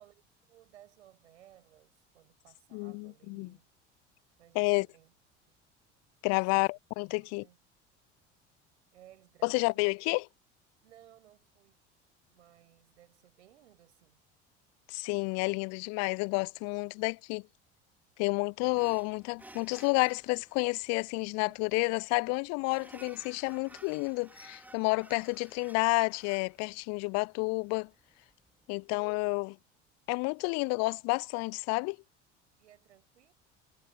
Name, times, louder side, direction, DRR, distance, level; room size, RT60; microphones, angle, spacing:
voice 1, 0.0-3.7 4.4-5.1 5.5-5.6 6.3-6.8 7.2-7.6 8.9-10.0 10.8-11.8 12.3-14.2 21.4-21.9 23.1-23.2 32.6-33.3, right 12 dB, 70° right, 6.8 m, -60 dB
voice 2, 2.7-3.5 4.5-4.9 6.2-7.4 9.4-10.2 14.9-17.4 18.2-27.9 28.7-29.6 30.1-32.0, left 31 dB, 45° left, 0.5 m, -30 dB
sound 1, 18.6-29.4, right 1 dB, 5° right, 2.3 m, -56 dB
figure-of-eight pair, 65°, 35 cm